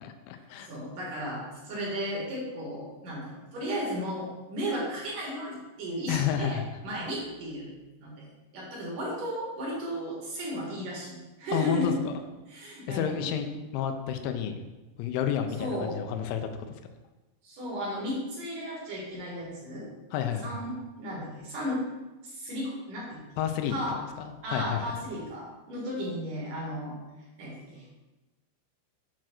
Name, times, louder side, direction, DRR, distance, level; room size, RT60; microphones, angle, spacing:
voice 1, 0.0-0.7 6.1-6.6 11.5-12.2 12.9-13.5 13.7-14.6 15.0-16.5 20.1-20.5 23.4-24.9, left 9 dB, 80° left, 7 dB, 2.9 m, -30 dB
voice 2, 0.7-7.7 8.0-8.3 8.5-12.0 12.5-13.2 15.6-16.0 17.4-19.9 20.4-21.8 22.2-23.2 23.7-24.0 24.4-27.0 27.4-28.0, equal, 55° right, -4 dB, 2.8 m, -34 dB
7.4 x 4.6 x 6.0 m, 1.1 s
omnidirectional pair, 5.7 m